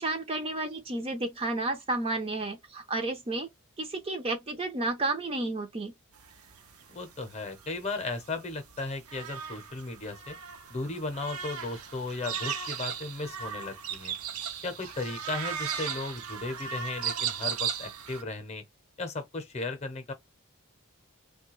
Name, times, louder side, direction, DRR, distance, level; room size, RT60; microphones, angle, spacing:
voice 1, 0.0-3.5 3.8-5.9, right 2 dB, 25° right, 0.5 m, -31 dB
sound 1, 6.2-18.2, right 8 dB, 80° right, 0.6 m, -37 dB
voice 2, 6.9-10.4 10.7-14.1 14.6-18.6 19.0-20.1, left 3 dB, 30° left, 0.7 m, -36 dB
3.2 x 2.2 x 3.0 m
head